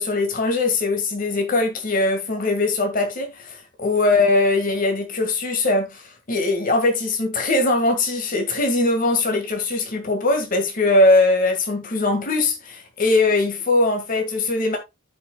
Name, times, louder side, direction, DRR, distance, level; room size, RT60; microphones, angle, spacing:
voice 1, 0.0-14.8, left 2 dB, 40° left, 1.7 m, -21 dB
14.0 x 5.1 x 2.2 m
head